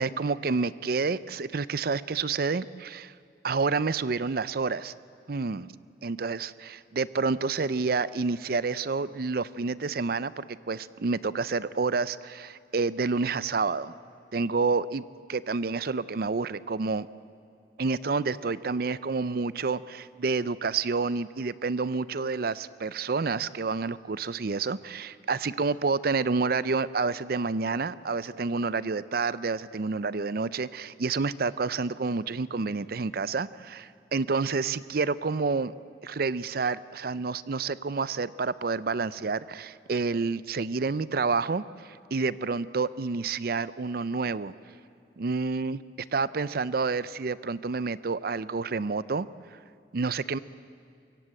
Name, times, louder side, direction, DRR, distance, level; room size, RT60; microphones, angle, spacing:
voice 1, 0.0-3.1 3.4-4.9 5.3-5.7 6.0-13.9 14.3-15.0 15.3-17.1 17.8-35.7 36.0-44.5 45.2-45.8 46.1-49.3 49.9-50.4, right 4 dB, 55° right, 17 dB, 0.5 m, -29 dB
25.0 x 23.5 x 7.8 m, 2.5 s
head